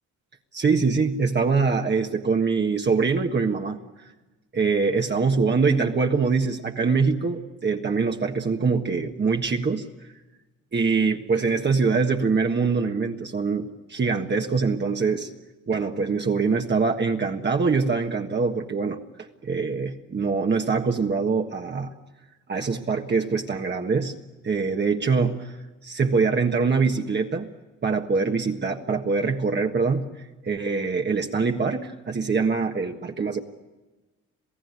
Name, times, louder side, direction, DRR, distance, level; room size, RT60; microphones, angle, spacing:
voice 1, 0.5-3.8 4.5-9.8 10.7-15.3 15.7-21.9 22.5-24.1 24.4-25.6 25.8-27.5 27.8-33.4, right 4 dB, 35° right, 2 dB, 1.6 m, -24 dB
28.0 x 17.0 x 9.6 m, 1.1 s
cardioid pair, 90°, 30 cm